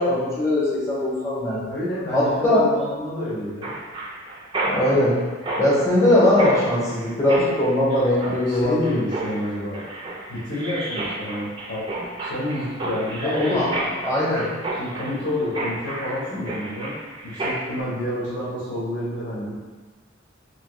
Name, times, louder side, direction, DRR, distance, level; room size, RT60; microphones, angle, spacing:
voice 1, 0.0-1.7 2.1-2.6 4.6-5.2 5.6-8.9 13.2-14.5, left 1 dB, 15° left, -7 dB, 0.7 m, -20 dB
voice 2, 1.7-3.7 8.2-9.8 10.3-13.7 14.8-16.9 17.2-19.6, left 1 dB, 65° left, -9 dB, 0.8 m, -29 dB
Mechanisms, 3.6-17.8, right 2 dB, 25° right, 0.4 m, -32 dB
2.9 x 2.7 x 3.0 m, 1.3 s
head